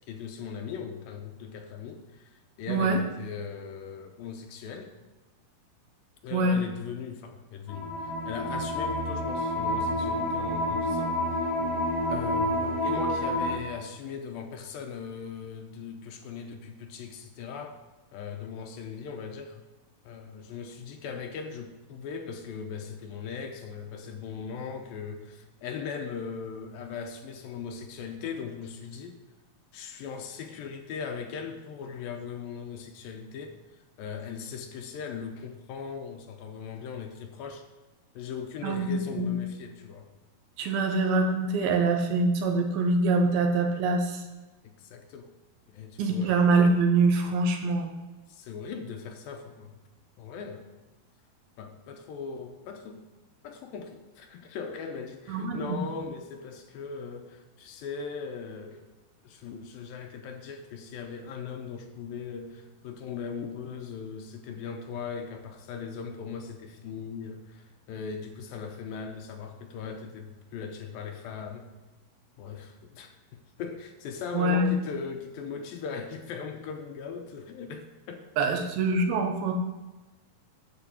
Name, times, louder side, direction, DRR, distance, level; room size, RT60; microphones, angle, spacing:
voice 1, 0.1-2.3 2.6-4.9 6.2-11.2 12.1-17.8 18.1-19.6 20.1-29.2 29.7-33.6 34.0-37.6 38.2-40.1 44.8-45.3 45.7-46.4 48.3-49.8 50.2-50.7 51.6-53.1 53.4-58.9 59.2-71.7 72.4-78.7, left 6 dB, 80° left, 5 dB, 2.4 m, -39 dB
voice 2, 2.7-3.0 6.3-6.6 38.6-39.4 40.6-44.2 46.0-47.9 55.3-55.8 74.3-74.7 78.4-79.5, right 3 dB, 75° right, 4 dB, 2.9 m, -24 dB
sound 1, 7.7-13.6, left 1 dB, 55° left, 1.3 m, -29 dB
10.5 x 4.2 x 7.5 m, 1.2 s
omnidirectional pair, 4.4 m